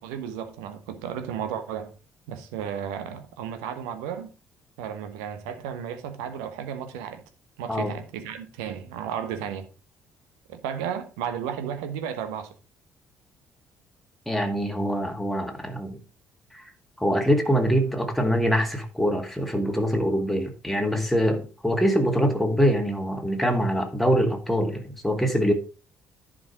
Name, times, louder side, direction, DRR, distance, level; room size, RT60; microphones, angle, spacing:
voice 1, 0.0-1.9 2.3-4.3 4.8-7.2 7.6-9.7 10.5-12.5, right 8 dB, 65° right, 1.1 m, -33 dB
voice 2, 14.3-16.0 16.5-16.7 17.0-25.5, equal, ahead, 2.0 m, -24 dB
11.0 x 5.0 x 4.9 m
figure-of-eight pair, 45°, 7 cm